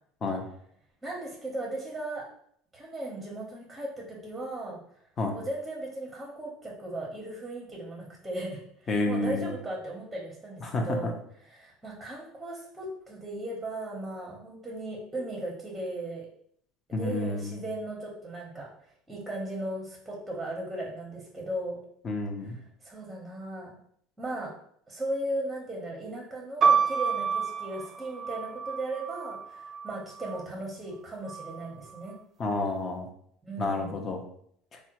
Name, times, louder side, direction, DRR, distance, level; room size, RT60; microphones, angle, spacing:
voice 1, 1.0-2.2 2.7-4.8 5.3-11.1 11.4-16.3 16.9-18.7 19.1-21.8 22.4-23.7 24.2-24.5 24.9-32.1 33.4-34.0, right 1 dB, 10° right, -2 dB, 0.9 m, -37 dB
voice 2, 8.9-9.5 10.6-10.8 16.9-17.5 22.0-22.6 32.4-33.1 33.6-34.2, left 2 dB, 35° left, 3 dB, 0.7 m, -29 dB
sound 1, 26.6-30.5 31.3-32.0, right 6 dB, 35° right, 0.5 m, -29 dB
3.4 x 2.1 x 2.9 m, 0.66 s
supercardioid pair, 100°, 0 cm